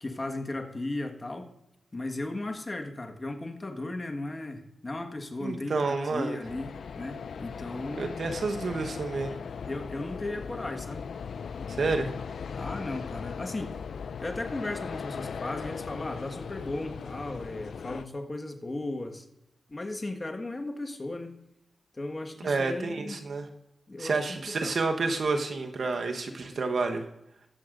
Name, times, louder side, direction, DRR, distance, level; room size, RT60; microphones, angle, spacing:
voice 1, 0.0-1.5 1.9-8.3 9.7-11.0 11.8-12.2 12.5-13.8 14.2-19.2 19.7-21.3 21.9-23.2 23.9-24.8, left 2 dB, 35° left, 5 dB, 1.5 m, -36 dB
voice 2, 5.4-6.4 8.0-9.4 11.7-12.1 22.4-23.5 24.0-27.0, right 3 dB, 65° right, 5 dB, 1.1 m, -29 dB
sound 1, 6.4-18.1, left 6 dB, 75° left, 0.3 m, -38 dB
21.0 x 7.7 x 2.6 m, 0.86 s
cardioid pair, 45°, 0 cm